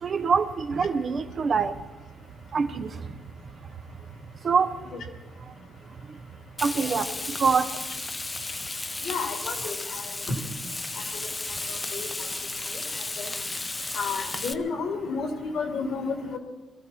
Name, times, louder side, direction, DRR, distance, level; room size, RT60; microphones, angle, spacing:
voice 1, 0.0-1.7 2.5-2.9 4.4-4.7 6.6-7.1 7.4-7.6, right 5 dB, 45° right, 9 dB, 1.0 m, -24 dB
Frying (food), 6.6-14.5, left 2 dB, 25° left, 0.8 m, -34 dB
voice 2, 9.0-9.7 10.3-10.4 11.9-12.1 13.2-13.3 13.9-16.4, left 4 dB, 70° left, 3 dB, 2.7 m, -31 dB
22.5 x 13.0 x 4.4 m, 1.2 s
cardioid pair, 90°, 0 cm